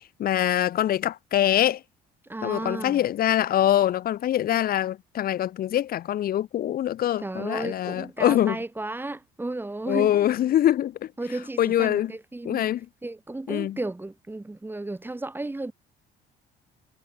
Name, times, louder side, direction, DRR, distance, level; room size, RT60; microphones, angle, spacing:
voice 1, 0.2-1.8 2.4-8.6 9.9-11.1 11.6-12.1 12.4-12.8 13.5-13.8, left 12 dB, 60° left, 2.8 m, -24 dB
voice 2, 2.2-3.0 7.2-10.4 11.2-12.7 13.0-15.7, right 2 dB, 10° right, 6.8 m, -34 dB
cardioid pair, 110°, 17 cm